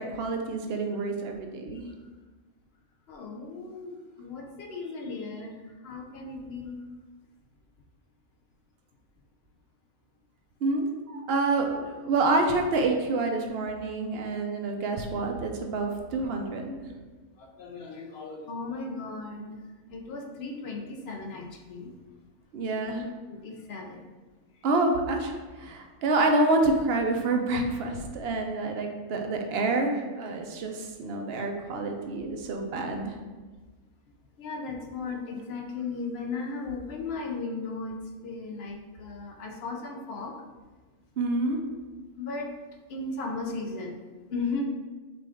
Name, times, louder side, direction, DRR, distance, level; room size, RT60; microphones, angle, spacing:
voice 1, 0.0-1.8 10.6-16.9 22.5-23.0 24.6-25.3 25.6-33.1 41.2-41.6, right 2 dB, 60° right, 3 dB, 0.7 m, -27 dB
voice 2, 3.1-5.5 5.8-6.7 17.4-19.6 19.9-21.9 22.7-24.1 27.5-27.6 34.4-40.4 42.2-42.5 42.9-44.0 44.3-44.6, left 3 dB, 60° left, 2 dB, 0.8 m, -36 dB
5.9 x 2.4 x 3.5 m, 1.3 s
omnidirectional pair, 1.4 m